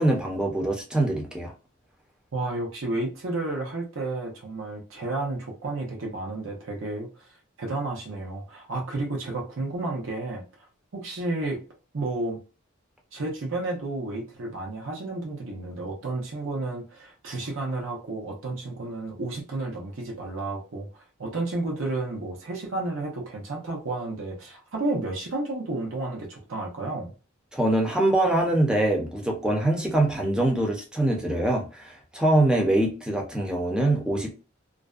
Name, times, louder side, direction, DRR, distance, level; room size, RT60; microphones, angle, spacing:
voice 1, 0.0-1.5 27.5-34.3, right 1 dB, 5° right, 0.6 m, -24 dB
voice 2, 2.3-7.3 7.6-10.4 10.9-11.6 11.9-12.4 13.1-27.1, right 2 dB, 70° right, 0.7 m, -31 dB
2.4 x 2.1 x 2.4 m
head